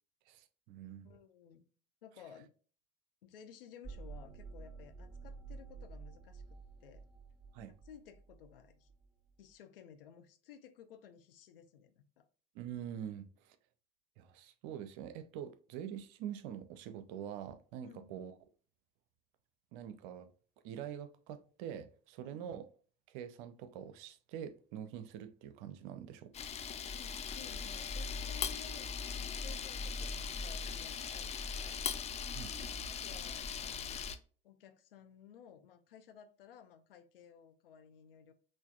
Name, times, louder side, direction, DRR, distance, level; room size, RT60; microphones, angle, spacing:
voice 1, 0.3-1.1 7.5-7.7 12.5-13.6 14.2-18.3 19.7-20.3 20.6-22.7 23.1-26.3 32.3-32.5, right 9 dB, 55° right, 0.6 m, -45 dB
voice 2, 1.0-1.6 2.0-2.5 3.2-6.4 6.8-7.0 7.6-8.9 9.4-12.3 17.8-18.1 22.2-22.5 26.9-31.9 32.9-34.1 34.4-38.3, left 8 dB, 70° left, 0.6 m, -56 dB
sound 1, 3.8-9.3, right 4 dB, ahead, 1.1 m, -50 dB
Camera, 26.3-34.2, left 6 dB, 25° left, 0.4 m, -39 dB
5.7 x 2.6 x 2.4 m
figure-of-eight pair, 60°, 29 cm